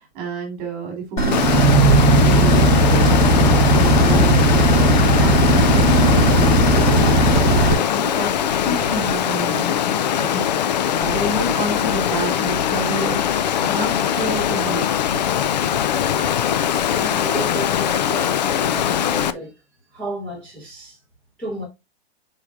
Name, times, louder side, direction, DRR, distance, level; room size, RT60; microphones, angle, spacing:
voice 1, 0.1-15.4, right 3 dB, 35° right, 3.4 m, -30 dB
sound 1, 1.2-7.7, right 1 dB, 20° left, 3.4 m, -16 dB
Water, 1.3-19.3, left 9 dB, 40° left, 0.4 m, -21 dB
voice 2, 16.9-19.5 19.9-21.0 21.4-21.6, right 1 dB, 5° left, 2.0 m, -32 dB
8.1 x 4.8 x 2.5 m
supercardioid pair, 175°, 32 cm